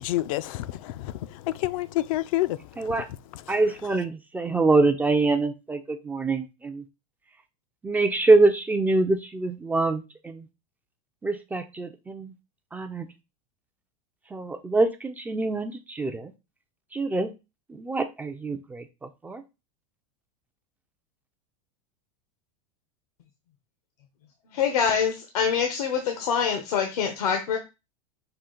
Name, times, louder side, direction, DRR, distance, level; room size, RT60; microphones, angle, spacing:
voice 1, 0.0-2.9 3.3-3.6, left 16 dB, 65° left, 0.4 m, -29 dB
voice 2, 3.5-6.8 7.8-10.4 11.2-12.3 12.7-13.1 14.3-16.3 16.9-17.3 17.8-18.8 19.2-19.4, right 3 dB, 10° right, 0.3 m, -24 dB
voice 3, 24.5-27.6, left 7 dB, 85° left, 0.8 m, -25 dB
5.6 x 2.4 x 3.7 m
supercardioid pair, 135°, 19 cm